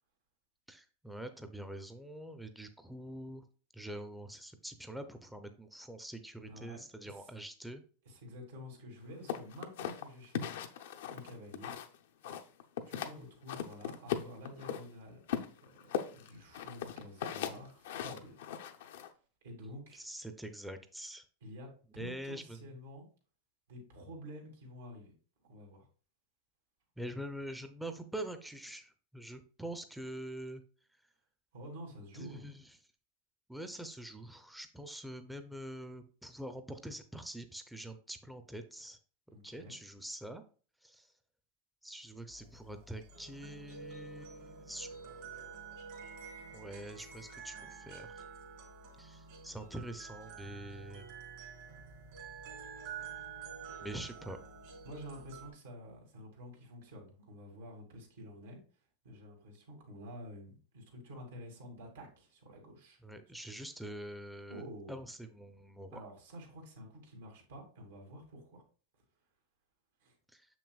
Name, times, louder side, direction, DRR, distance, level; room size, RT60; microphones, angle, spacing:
voice 1, 0.7-3.5 3.7-7.8 19.9-21.3 22.0-22.6 27.0-30.6 32.1-32.6 33.5-39.0 39.4-40.4 40.8-41.1 41.8-45.5 46.5-48.2 49.0-51.1 53.8-54.4 63.0-66.0 70.3-70.5, right 1 dB, 5° right, 8 dB, 0.6 m, -45 dB
voice 2, 6.4-7.3 8.0-10.7 11.1-11.7 12.9-15.2 15.6-18.4 19.4-20.0 21.4-23.1 23.7-25.1 25.4-25.9 31.5-32.5 39.3-39.7 54.8-58.6 59.0-63.0 64.5-65.0 65.9-68.6 70.0-70.1, equal, 85° right, 1 dB, 2.5 m, -49 dB
sound 1, 9.3-12.0 12.2-13.2 13.5-14.8 15.3-19.1, left 9 dB, 75° left, 0.6 m, -38 dB
sound 2, 42.3-55.5, right 6 dB, 60° right, 2.4 m, -49 dB
6.7 x 6.0 x 2.3 m, 0.39 s
hypercardioid pair, 120°, 0 cm